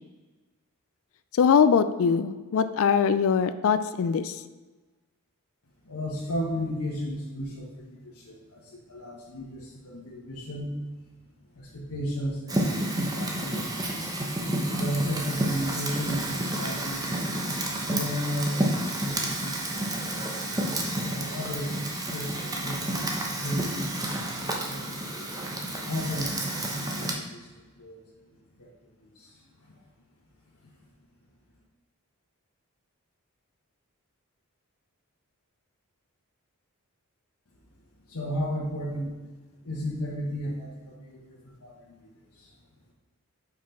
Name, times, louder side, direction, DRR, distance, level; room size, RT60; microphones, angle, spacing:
voice 1, 1.3-4.4, left 6 dB, 65° left, 12 dB, 0.4 m, -22 dB
voice 2, 5.8-10.7 11.5-13.7 14.7-17.2 17.9-19.9 20.1-20.3 21.1-25.3 25.9-27.4 27.8-28.0 28.6-28.7 29.0-29.4 30.6-30.7 38.1-39.2 39.6-41.9 42.4-42.5, equal, 85° left, -4 dB, 1.3 m, -34 dB
Fire, 12.5-27.1, right 1 dB, 15° right, 0.9 m, -30 dB
5.7 x 4.9 x 5.7 m, 1.3 s
head